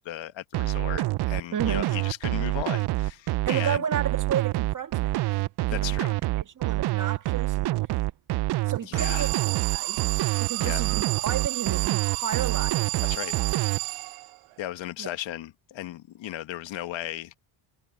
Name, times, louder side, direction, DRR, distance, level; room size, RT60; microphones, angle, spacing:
voice 1, 0.0-3.8 5.7-6.2 8.8-9.3 10.6-10.8 13.0-13.4 13.9-14.1 14.6-17.3, left 13 dB, 65° left, 1.6 m, -36 dB
sound 1, 0.5-13.8, right 17 dB, 55° right, 0.7 m, -26 dB
voice 2, 1.5-1.9 3.4-6.0 6.3-7.8 8.7-10.0 10.4-12.9 15.0-15.1, right 9 dB, 40° right, 1.8 m, -32 dB
Alarm, 9.0-14.5, right 23 dB, 80° right, 0.9 m, -31 dB
cardioid pair, 100°, 49 cm